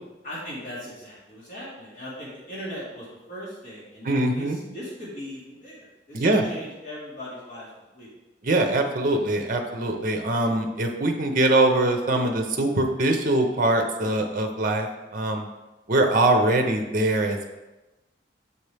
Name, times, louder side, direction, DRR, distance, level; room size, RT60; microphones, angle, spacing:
voice 1, 0.2-8.1, equal, 45° left, -8 dB, 1.7 m, -39 dB
voice 2, 4.0-4.6 6.1-6.4 8.4-14.9 15.1-15.5 15.9-17.5, right 2 dB, 50° right, 4 dB, 0.7 m, -22 dB
6.7 x 4.2 x 3.4 m, 1.1 s
head